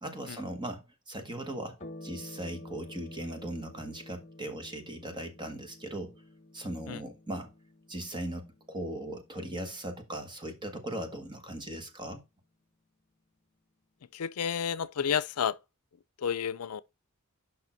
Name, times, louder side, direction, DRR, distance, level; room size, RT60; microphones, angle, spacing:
voice 1, 0.0-1.8 2.0-6.1 6.5-7.5 7.9-12.2, right 1 dB, 20° right, 1.5 m, -38 dB
sound 1, 1.8-10.7, left 1 dB, 30° left, 1.4 m, -51 dB
voice 2, 14.1-15.6 16.2-16.8, left 7 dB, 85° left, 0.5 m, -30 dB
6.7 x 5.6 x 4.4 m
head